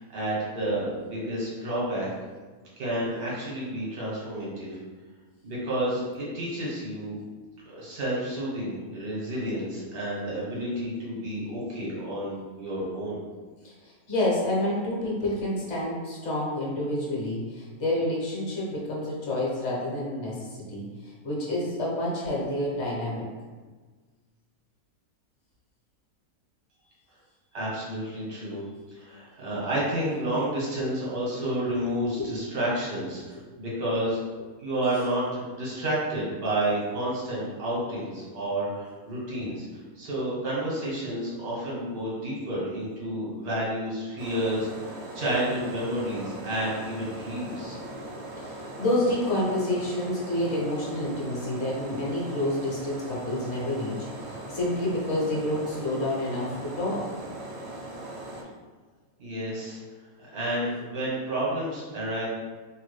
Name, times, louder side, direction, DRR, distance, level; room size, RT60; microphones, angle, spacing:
voice 1, 0.0-2.1 2.8-4.8 5.4-7.2 7.6-13.2 27.5-28.6 28.9-34.2 34.6-39.7 39.9-47.8 59.2-59.8 60.3-62.3, right 1 dB, 90° right, -6 dB, 1.6 m, -30 dB
voice 2, 13.6-23.2 32.2-32.3 39.4-39.5 48.4-57.1, left 1 dB, 55° left, -4 dB, 1.0 m, -29 dB
sound 1, 44.2-58.4, right 2 dB, 65° right, 0.7 m, -40 dB
3.3 x 2.2 x 3.2 m, 1.4 s
omnidirectional pair, 1.5 m